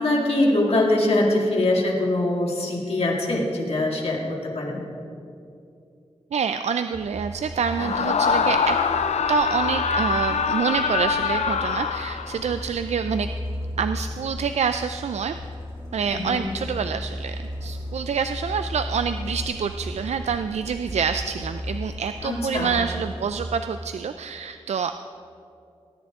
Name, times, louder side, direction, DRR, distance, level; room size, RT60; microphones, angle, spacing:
voice 1, 0.0-4.8 7.8-7.9 16.1-16.4 22.2-22.8, left 1 dB, 65° left, -2 dB, 2.2 m, -23 dB
voice 2, 6.3-8.8 9.3-13.3 13.8-15.3 15.9-17.4 17.6-24.9, right 6 dB, 85° right, 9 dB, 0.4 m, -27 dB
Truck, 6.9-23.4, equal, 30° right, 2.3 m, -35 dB
Screaming, 7.7-12.6, left 6 dB, 90° left, 0.5 m, -24 dB
19.5 x 10.5 x 3.6 m, 2.6 s
wide cardioid pair, 100°, 11 cm